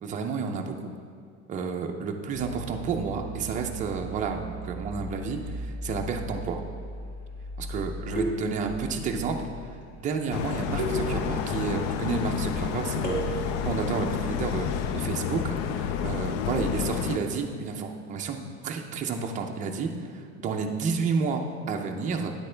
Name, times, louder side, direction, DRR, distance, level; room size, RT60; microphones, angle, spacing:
voice 1, 0.0-0.9 1.5-6.6 7.6-9.5 10.0-19.9 20.4-22.3, right 5 dB, 25° right, 2 dB, 0.5 m, -31 dB
sound 1, 2.3-11.4, right 1 dB, 55° left, 1.5 m, -39 dB
sound 2, 8.2-9.1 10.8-11.7 13.0-13.8, right 2 dB, 30° left, 1.2 m, -34 dB
sound 3, 10.3-17.2, left 8 dB, 70° left, 0.6 m, -30 dB
9.5 x 8.1 x 3.3 m, 2.3 s
cardioid pair, 180°, 31 cm